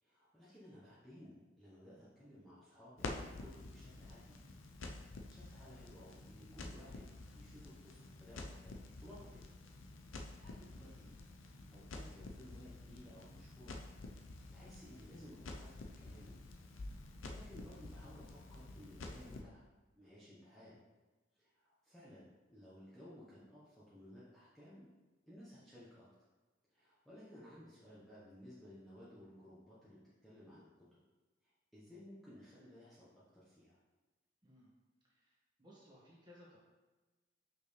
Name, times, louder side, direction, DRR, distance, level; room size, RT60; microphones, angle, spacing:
voice 1, 0.0-4.4 5.0-9.5 10.0-11.1 11.7-13.8 14.2-16.4 16.9-19.6 20.0-20.8 21.3-24.9 25.3-26.1 26.7-31.0 31.4-33.8, equal, ahead, -11 dB, 1.1 m, -57 dB
Crackle, 3.0-19.4, left 2 dB, 85° left, 0.7 m, -50 dB
voice 2, 34.4-34.7 35.1-36.6, left 1 dB, 20° right, -6 dB, 1.7 m, -61 dB
6.4 x 5.4 x 3.3 m, 1.2 s
head